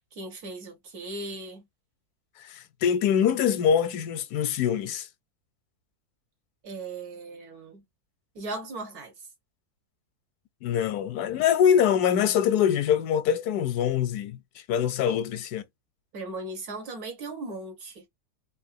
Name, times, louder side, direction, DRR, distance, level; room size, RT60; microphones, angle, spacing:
voice 1, 0.1-1.7 6.6-7.8 8.4-9.1 15.1-15.2 16.1-18.1, right 2 dB, 75° right, 1.9 m, -37 dB
voice 2, 2.4-5.1 10.6-14.4 14.7-15.6, left 8 dB, 90° left, 1.2 m, -24 dB
3.8 x 2.4 x 2.6 m
omnidirectional pair, 1.6 m